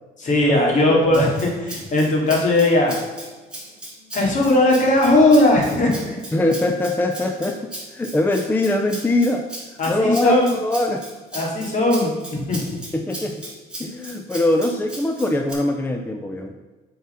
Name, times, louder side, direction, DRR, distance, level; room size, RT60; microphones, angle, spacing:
voice 1, 0.2-3.0 4.1-6.2 9.8-10.5 11.3-12.8, left 1 dB, 45° left, -1 dB, 2.5 m, -18 dB
voice 2, 0.9-1.2 6.3-9.4 9.9-11.0 12.9-13.5 13.8-16.5, left 1 dB, 10° left, 4 dB, 0.5 m, -22 dB
Rattle (instrument), 1.1-15.5, right 1 dB, 5° right, 2.4 m, -37 dB
7.1 x 4.7 x 5.7 m, 1.3 s
cardioid pair, 110°, 17 cm